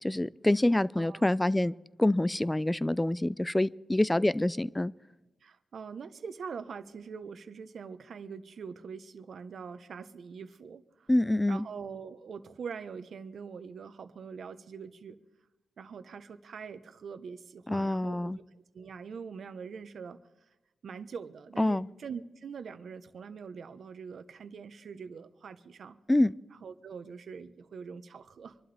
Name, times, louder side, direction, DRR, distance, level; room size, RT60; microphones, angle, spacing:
voice 1, 0.0-1.7 2.0-4.9 11.1-11.7 17.7-18.4 21.6-21.9 26.1-26.3, left 1 dB, 15° left, 19 dB, 0.4 m, -26 dB
voice 2, 1.0-1.3 5.4-11.1 11.5-15.2 15.8-20.2 20.8-26.0 26.6-28.6, right 6 dB, 70° right, 11 dB, 1.0 m, -43 dB
25.5 x 12.0 x 3.4 m, 1.0 s
wide cardioid pair, 100°, 0 cm